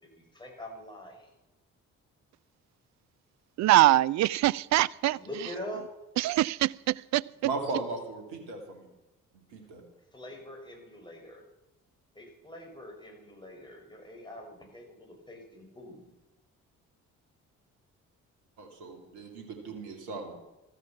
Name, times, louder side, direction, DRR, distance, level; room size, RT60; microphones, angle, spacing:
voice 1, 0.2-1.3 5.1-5.9 10.1-11.4 12.1-16.1, left 1 dB, 10° left, 0 dB, 6.3 m, -44 dB
voice 2, 3.6-5.2 6.2-7.2, right 15 dB, 45° right, 21 dB, 0.5 m, -23 dB
voice 3, 7.4-8.9 9.3-9.8 18.6-20.3, right 3 dB, 65° right, 4 dB, 2.9 m, -37 dB
14.5 x 13.5 x 5.9 m, 0.98 s
figure-of-eight pair, 45°, 42 cm